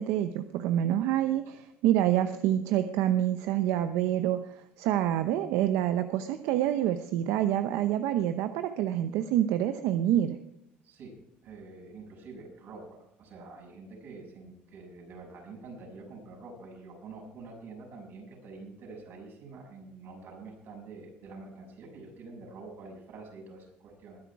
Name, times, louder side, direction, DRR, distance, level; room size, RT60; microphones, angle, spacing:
voice 1, 0.0-10.4, right 11 dB, 80° right, 10 dB, 0.8 m, -27 dB
voice 2, 11.4-12.9 13.2-24.2, right 3 dB, 55° right, 0 dB, 6.8 m, -46 dB
21.0 x 10.5 x 4.7 m, 0.83 s
cardioid pair, 135°, 4 cm